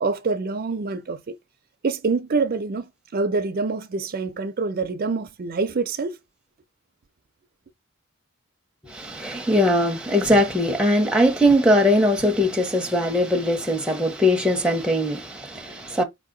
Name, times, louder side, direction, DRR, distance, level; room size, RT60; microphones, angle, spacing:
voice 1, 0.0-1.4 1.8-6.2, right 4 dB, 45° right, 0.4 m, -26 dB
voice 2, 8.9-16.0, equal, 5° right, 0.7 m, -20 dB
4.9 x 2.8 x 3.7 m
head